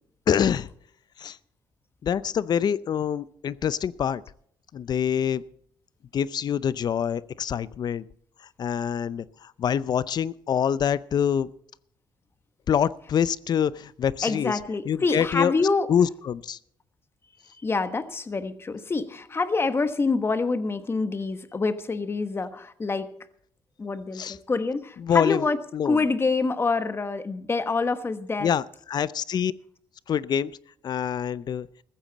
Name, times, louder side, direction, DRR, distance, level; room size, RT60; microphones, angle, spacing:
voice 1, 0.3-0.7 1.2-1.4 2.0-4.2 4.7-5.4 6.1-8.0 8.6-11.5 12.7-14.6 14.9-15.5 15.9-16.6 24.1-24.4 25.0-25.5 25.7-26.0 28.4-29.5 30.1-30.5 30.8-31.7, left 8 dB, 50° left, 18 dB, 0.5 m, -25 dB
voice 2, 14.2-15.9 17.6-23.1 23.8-25.6 25.8-28.5, left 4 dB, 25° left, 11 dB, 1.3 m, -26 dB
14.5 x 14.5 x 4.1 m, 0.65 s
cardioid pair, 95°, 9 cm